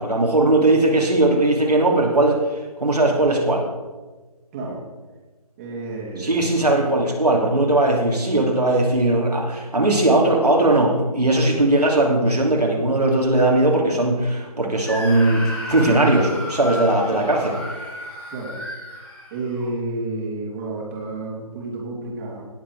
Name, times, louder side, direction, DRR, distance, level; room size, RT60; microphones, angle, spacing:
voice 1, 0.0-2.4 2.8-3.7 6.2-17.6, right 2 dB, 85° right, -1 dB, 2.9 m, -19 dB
voice 2, 5.6-6.4 17.1-17.3 18.3-18.6 19.3-22.4, right 2 dB, 20° right, -3 dB, 2.7 m, -30 dB
Screaming, 14.8-19.7, equal, 5° left, 1.8 m, -33 dB
18.0 x 7.6 x 4.8 m, 1.3 s
figure-of-eight pair, 150°, 20 cm